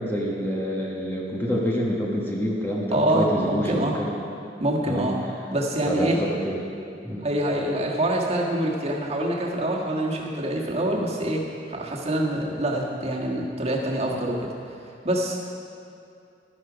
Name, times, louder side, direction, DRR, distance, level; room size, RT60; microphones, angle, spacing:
voice 1, 0.0-4.1 4.9-5.1 5.9-6.6 7.0-7.2, equal, 10° left, -3 dB, 1.2 m, -27 dB
voice 2, 2.9-3.9 4.6-5.2 5.5-6.2 7.2-14.4 15.0-15.4, right 1 dB, 35° right, -2 dB, 1.6 m, -25 dB
12.0 x 11.0 x 5.1 m, 2.6 s
head